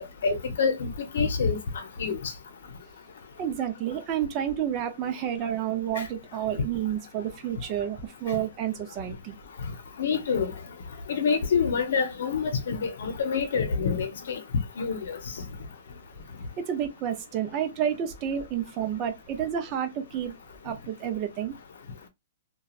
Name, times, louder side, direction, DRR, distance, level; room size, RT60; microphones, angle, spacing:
voice 1, 0.2-1.6 2.0-2.3 10.0-10.5 11.1-14.4 14.8-15.2, left 5 dB, 75° left, 0.7 m, -26 dB
voice 2, 3.4-9.4 16.7-20.3 20.6-21.6, right 9 dB, 30° right, 0.6 m, -30 dB
2.9 x 2.3 x 2.4 m
hypercardioid pair, 155°, 0 cm